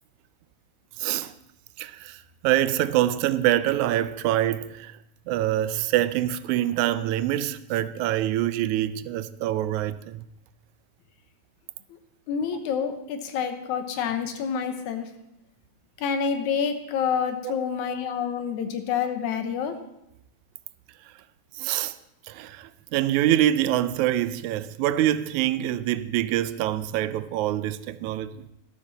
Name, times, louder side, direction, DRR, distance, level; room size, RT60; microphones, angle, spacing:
voice 1, 1.0-1.3 1.8-5.0 5.3-10.3 17.4-17.5 21.6-22.0 22.3-28.4, right 13 dB, 85° right, 2.0 m, -25 dB
voice 2, 12.3-15.1 16.0-19.8, left 7 dB, 85° left, 2.5 m, -28 dB
13.0 x 12.5 x 4.1 m
omnidirectional pair, 3.3 m